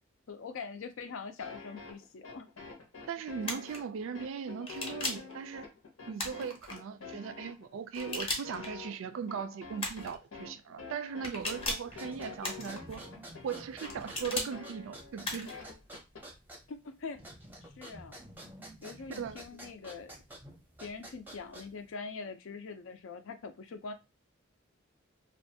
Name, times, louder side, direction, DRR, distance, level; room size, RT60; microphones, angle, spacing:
voice 1, 0.3-2.5 16.7-17.2 17.8-18.2 18.8-20.1 20.8-23.9, left 4 dB, 65° left, 0.4 m, -43 dB
sound 1, 1.4-16.2, left 4 dB, 90° left, 0.8 m, -47 dB
voice 2, 3.1-5.7 6.1-13.0 13.4-15.6 19.2-19.7, right 6 dB, 65° right, 0.3 m, -39 dB
sound 2, 3.4-3.8 4.7-5.3 6.2-6.8 7.9-8.7 9.8-10.2 11.2-11.9 12.4-13.0 13.8-14.5 15.2-15.6, left 2 dB, 30° left, 0.6 m, -37 dB
sound 3, 11.9-21.9, right 1 dB, 10° right, 0.6 m, -50 dB
2.5 x 2.2 x 2.7 m
head